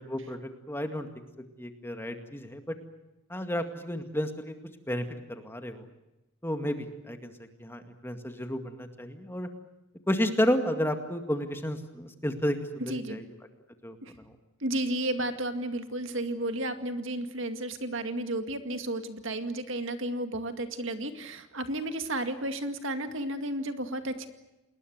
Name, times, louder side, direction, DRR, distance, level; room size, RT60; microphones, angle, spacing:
voice 1, 0.1-1.1 1.6-2.8 3.3-4.5 4.9-5.9 6.4-7.3 7.6-9.5 10.1-12.6 12.9-13.2 13.8-14.3, equal, 10° left, 6 dB, 2.1 m, -31 dB
voice 2, 12.8-13.2 14.0-14.1 14.6-24.3, right 1 dB, 60° right, 8 dB, 2.1 m, -32 dB
28.5 x 20.5 x 8.0 m, 0.97 s
head